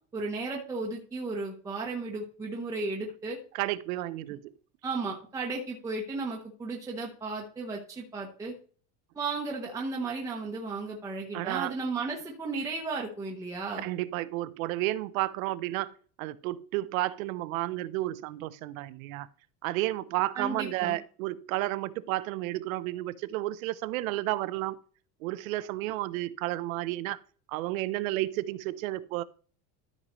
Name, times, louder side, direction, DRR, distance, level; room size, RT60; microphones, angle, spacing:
voice 1, 0.1-3.4 4.8-8.5 9.1-13.8 20.3-21.0, right 3 dB, 10° right, 0.9 m, -34 dB
voice 2, 3.5-4.5 11.3-11.7 13.8-19.3 19.6-24.8 25.2-27.2 27.5-29.2, right 17 dB, 85° right, 0.8 m, -32 dB
13.0 x 5.4 x 3.1 m
cardioid pair, 175°, 40 cm